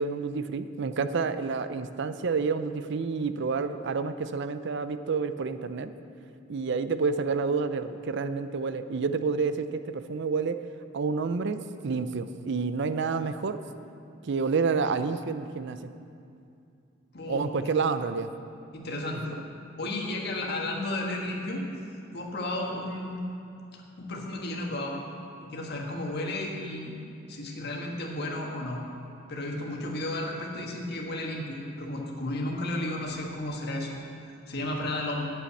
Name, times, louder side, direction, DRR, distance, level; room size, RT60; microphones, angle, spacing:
voice 1, 0.0-5.9 6.5-10.6 10.9-13.6 14.2-15.8 17.3-18.3, right 4 dB, 65° right, 11 dB, 0.5 m, -29 dB
voice 2, 17.1-17.5 18.7-19.4 19.8-21.6 22.1-23.3 23.7-25.0 25.4-27.0 27.3-28.8 29.3-33.9 34.5-35.3, left 1 dB, 55° left, -1 dB, 1.5 m, -33 dB
8.5 x 7.6 x 8.4 m, 2.5 s
head